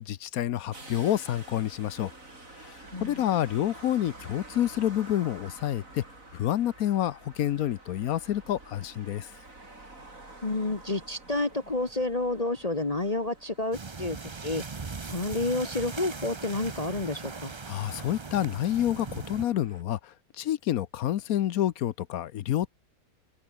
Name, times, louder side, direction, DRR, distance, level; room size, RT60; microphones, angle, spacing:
voice 1, 0.0-2.1 2.6-6.0 6.3-9.3 17.7-22.7, left 12 dB, 65° left, 1.1 m, -28 dB
sound 1, 0.7-19.8, right 2 dB, 50° right, 6.2 m, -50 dB
voice 2, 2.9-3.2 10.4-14.2 14.4-14.6 15.1-17.5, left 2 dB, 25° left, 1.4 m, -30 dB
sound 2, 13.7-19.4, right 4 dB, 30° right, 0.5 m, -39 dB
open air
omnidirectional pair, 1.7 m